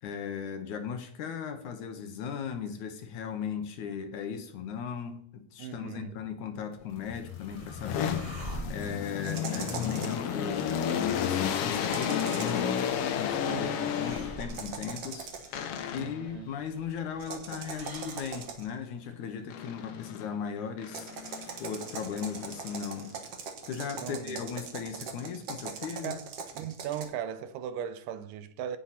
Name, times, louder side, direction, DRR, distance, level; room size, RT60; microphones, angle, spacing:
voice 1, 0.0-8.2 8.7-12.8 13.2-15.3 15.9-21.1 21.6-23.1 23.6-26.2, left 7 dB, 70° left, 2.3 m, -37 dB
voice 2, 5.6-6.1 13.4-13.9 15.9-16.5 24.0-24.4 26.0-26.3 26.5-28.8, right 9 dB, 85° right, 2.2 m, -38 dB
sound 1, 6.8-18.7, right 2 dB, 30° right, 1.1 m, -48 dB
sound 2, 7.0-14.6 15.5-16.3 19.5-20.3 20.8-23.2, left 8 dB, 85° left, 1.3 m, -33 dB
sound 3, 9.2-10.3 11.7-12.7 14.4-15.6 17.2-18.8 20.8-27.0, right 5 dB, 55° right, 2.0 m, -41 dB
17.0 x 5.7 x 4.2 m
omnidirectional pair, 3.9 m